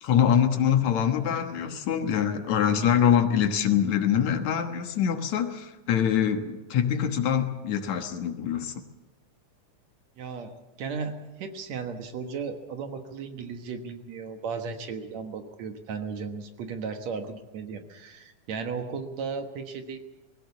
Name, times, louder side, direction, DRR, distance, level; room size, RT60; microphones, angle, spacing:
voice 1, 0.0-8.8, left 8 dB, 65° left, 6 dB, 2.6 m, -24 dB
voice 2, 10.2-10.5 10.8-20.0, right 5 dB, 65° right, 6 dB, 2.5 m, -35 dB
20.5 x 17.0 x 8.3 m, 1.1 s
omnidirectional pair, 3.6 m